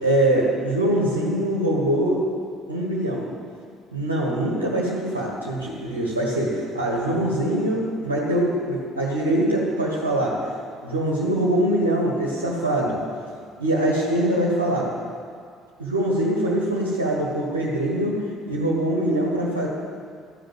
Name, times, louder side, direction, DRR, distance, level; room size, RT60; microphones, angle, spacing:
voice 1, 0.0-2.2 2.7-3.3 3.9-10.3 10.8-13.0 13.6-14.9 15.8-18.2 18.5-19.7, right 1 dB, 85° right, -4 dB, 1.6 m, -23 dB
14.0 x 5.2 x 7.7 m, 2.1 s
figure-of-eight pair, 55°, 0 cm